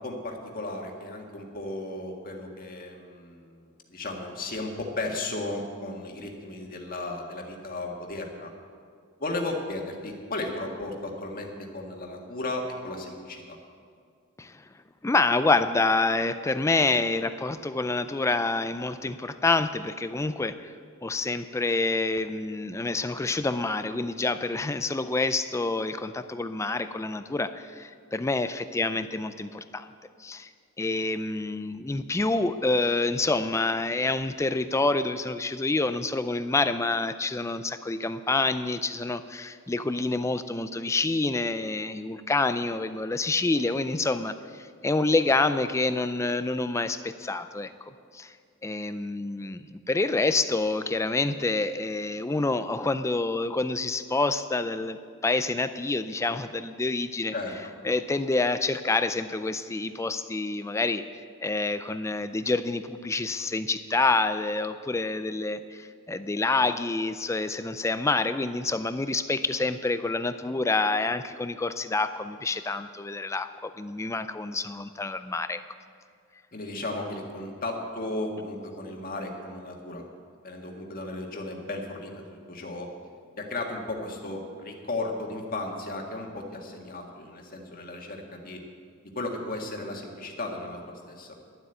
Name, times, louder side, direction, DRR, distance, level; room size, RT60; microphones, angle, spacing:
voice 1, 0.0-8.5 9.2-13.6 57.3-57.5 76.5-80.1 80.4-82.9 83.4-88.6 89.2-91.3, left 2 dB, 40° left, 1 dB, 1.7 m, -35 dB
voice 2, 15.0-20.7 21.0-29.9 30.2-30.5 30.8-47.7 48.1-48.3 48.6-57.3 57.8-61.0 61.4-75.6, left 3 dB, 15° left, 11 dB, 0.3 m, -27 dB
12.0 x 7.9 x 9.0 m, 2.2 s
head